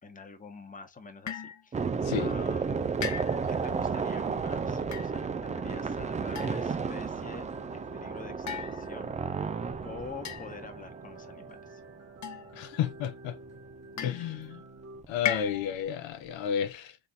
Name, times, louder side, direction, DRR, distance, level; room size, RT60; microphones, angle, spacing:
voice 1, 0.0-2.9 3.5-7.5 7.7-9.1 9.8-11.8 14.0-14.2, left 4 dB, 20° left, 1.0 m, -46 dB
sound 1, 1.3-1.6 3.0-3.6 4.8-5.1 6.4-6.9 8.5-9.2 10.2-10.8 12.2-12.8 14.0-14.5 15.3-15.9, left 8 dB, 40° left, 0.7 m, -37 dB
sound 2, 1.7-11.7 13.4-13.5 13.7-13.8 15.0-15.6, right 5 dB, 20° right, 0.3 m, -33 dB
sound 3, 2.2-15.0, right 2 dB, 35° right, 1.3 m, -49 dB
voice 2, 12.5-13.4 14.0-14.6 15.1-17.0, left 9 dB, 75° left, 0.9 m, -32 dB
4.0 x 3.8 x 2.6 m
cardioid pair, 105°, 46 cm